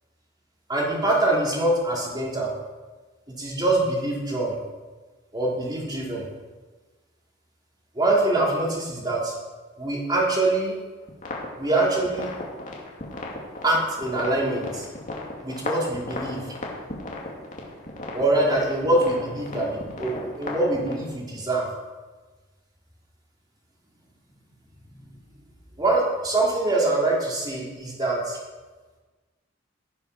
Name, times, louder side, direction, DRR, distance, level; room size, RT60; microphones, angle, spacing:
voice 1, 0.7-2.5 3.4-4.6 5.3-6.3 7.9-9.3 9.8-10.7 11.6-12.3 13.6-14.9 15.4-16.4 18.1-21.7 25.8-28.4, right 2 dB, 20° right, -4 dB, 3.2 m, -24 dB
sound 1, 11.1-20.9, left 2 dB, 40° left, 2.4 m, -36 dB
16.0 x 7.1 x 6.0 m, 1.3 s
head